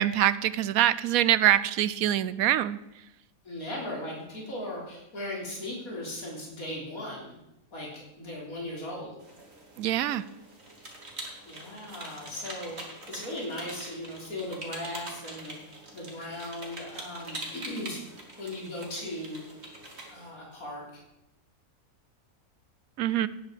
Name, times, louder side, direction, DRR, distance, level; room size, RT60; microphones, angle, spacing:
voice 1, 0.0-2.8 9.8-10.2 23.0-23.3, right 12 dB, 85° right, 16 dB, 1.1 m, -24 dB
voice 2, 3.4-7.3 7.7-9.2 11.5-12.8 13.1-15.6 15.9-18.0 18.4-19.4 20.1-21.0, left 1 dB, 90° left, -4 dB, 4.0 m, -37 dB
sound 1, 9.2-20.3, right 1 dB, 50° right, 2.9 m, -44 dB
18.0 x 9.2 x 5.1 m, 0.91 s
omnidirectional pair, 1.5 m